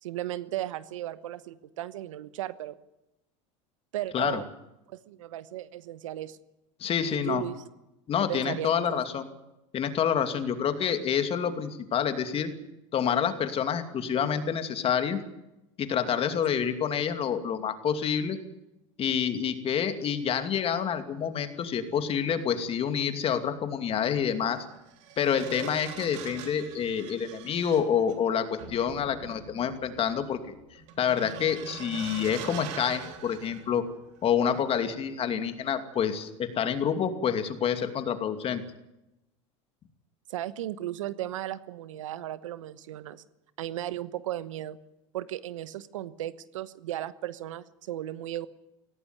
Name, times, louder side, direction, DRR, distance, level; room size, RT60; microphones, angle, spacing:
voice 1, 0.0-2.7 3.9-4.5 4.9-6.4 7.1-7.6 8.3-9.0 40.3-43.2 43.6-44.8 45.1-48.5, right 13 dB, 85° right, 16 dB, 1.1 m, -35 dB
voice 2, 6.8-7.4 8.1-9.2 9.7-12.5 12.9-15.2 15.8-18.4 19.0-24.7 25.2-30.4 30.7-33.8 34.2-38.6, left 8 dB, 35° left, 8 dB, 2.6 m, -28 dB
sound 1, 23.1-23.3 24.5-34.2 34.6-34.8, right 7 dB, 70° right, 3.5 m, -43 dB
18.0 x 17.0 x 9.6 m, 0.92 s
supercardioid pair, 105°, 16 cm